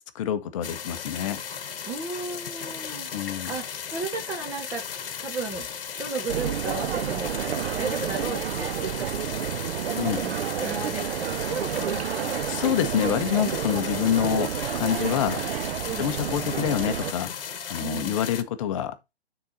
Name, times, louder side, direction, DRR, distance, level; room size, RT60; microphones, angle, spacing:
voice 1, 0.1-1.4 3.1-3.5 9.9-10.2 12.5-15.4 15.8-17.3 17.7-18.9, left 10 dB, 30° left, 0.7 m, -27 dB
sound 1, 0.6-18.4, left 7 dB, 60° left, 1.1 m, -36 dB
voice 2, 1.9-4.8 5.2-5.7 6.0-7.5 7.8-9.2 10.2-12.4 15.9-16.1 17.8-18.2, right 4 dB, 10° right, 0.5 m, -34 dB
sound 2, 6.3-17.1, right 10 dB, 65° right, 0.4 m, -30 dB
sound 3, 11.8-17.8, left 1 dB, 10° left, 1.9 m, -49 dB
9.4 x 3.9 x 4.1 m
figure-of-eight pair, 130°, 32 cm